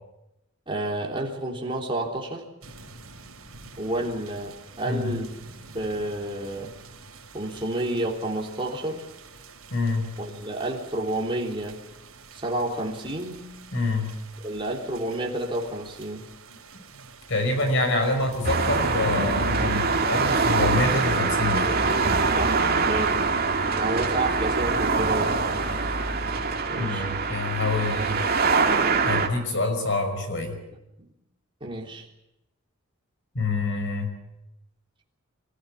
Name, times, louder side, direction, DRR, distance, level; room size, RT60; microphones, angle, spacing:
voice 1, 0.7-2.5 3.8-5.3 5.7-6.7 7.3-9.0 10.2-11.8 12.3-13.5 14.4-16.3 22.4-23.3 23.6-25.4 26.7-27.1 31.0-31.1 31.6-32.1, right 1 dB, 25° right, -1 dB, 3.5 m, -30 dB
sound 1, 2.6-20.9, right 2 dB, 80° right, 4.3 m, -41 dB
voice 2, 4.8-5.2 9.7-10.1 13.7-14.1 17.3-21.7 26.8-28.2 29.0-30.6 33.3-34.1, left 2 dB, 60° left, 5 dB, 5.7 m, -26 dB
sound 2, 18.4-29.3, right 4 dB, 45° right, 2.4 m, -24 dB
25.5 x 15.0 x 9.9 m, 0.89 s
head